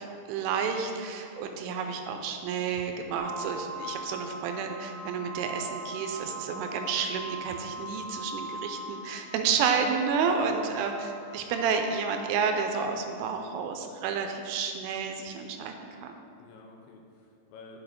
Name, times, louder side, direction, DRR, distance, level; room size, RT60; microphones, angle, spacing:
voice 1, 0.0-15.7 16.0-16.1, right 6 dB, 85° right, 5 dB, 3.0 m, -30 dB
sound 1, 3.2-13.3, right 1 dB, 50° right, 2.8 m, -41 dB
voice 2, 7.7-8.1 10.3-10.8 16.4-17.8, left 3 dB, 85° left, 1 dB, 3.3 m, -52 dB
7.2 x 4.9 x 4.9 m, 2.5 s
omnidirectional pair, 5.7 m